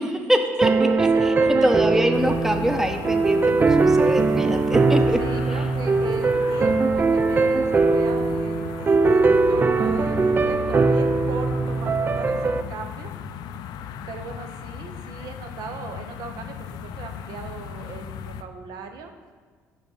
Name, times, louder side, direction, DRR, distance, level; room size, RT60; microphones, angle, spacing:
voice 1, 0.0-1.3 1.6-5.2, equal, 5° right, 6 dB, 0.7 m, -24 dB
sound 1, 0.6-12.6, right 3 dB, 25° right, 0.3 m, -21 dB
voice 2, 0.6-2.1 5.2-13.1 14.1-16.7 17.0-19.1, right 5 dB, 65° right, 6 dB, 0.7 m, -37 dB
sound 2, 2.1-18.4, left 8 dB, 65° left, 0.4 m, -36 dB
7.1 x 4.9 x 4.0 m, 1.5 s
hypercardioid pair, 55°, 8 cm